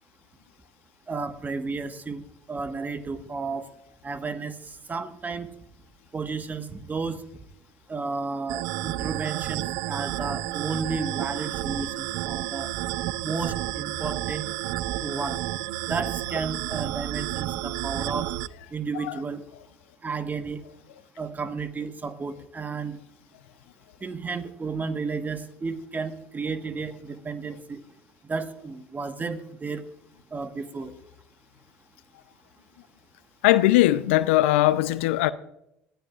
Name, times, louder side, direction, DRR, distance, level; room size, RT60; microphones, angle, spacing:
voice 1, 1.1-2.2 2.5-3.7 4.0-5.5 6.1-7.2 7.9-12.7 13.2-14.5 15.0-15.4 15.9-18.3 18.7-19.4 20.0-20.6 21.2-23.0 24.0-27.8 28.2-29.8 30.3-30.9, right 4 dB, 25° right, 1.4 m, -32 dB
sound 1, 8.5-18.5, right 16 dB, 60° right, 0.4 m, -31 dB
voice 2, 33.4-35.3, left 16 dB, 75° left, 0.5 m, -20 dB
19.5 x 13.5 x 2.4 m
hypercardioid pair, 60°, 7 cm